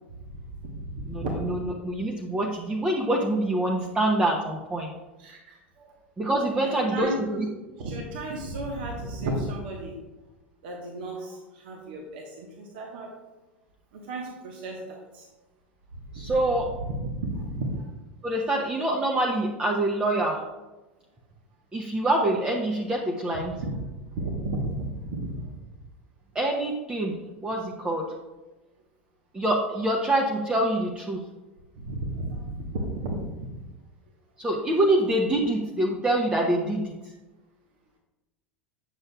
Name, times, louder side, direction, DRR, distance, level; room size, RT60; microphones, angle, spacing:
voice 1, 0.5-1.5 5.2-5.9 6.5-7.5 7.8-10.0 10.6-13.2 13.9-15.2 16.1-17.8 23.5-23.8 24.1-25.5 31.7-33.6, right 1 dB, 60° right, 0 dB, 1.2 m, -34 dB
voice 2, 1.1-1.6 1.8-4.9 6.2-7.4 16.1-16.7 18.2-20.4 21.7-23.5 26.3-28.1 29.3-31.2 34.4-36.9, right 1 dB, 15° right, -1 dB, 0.8 m, -25 dB
8.9 x 6.5 x 2.3 m, 1.1 s
figure-of-eight pair, 80°, 6 cm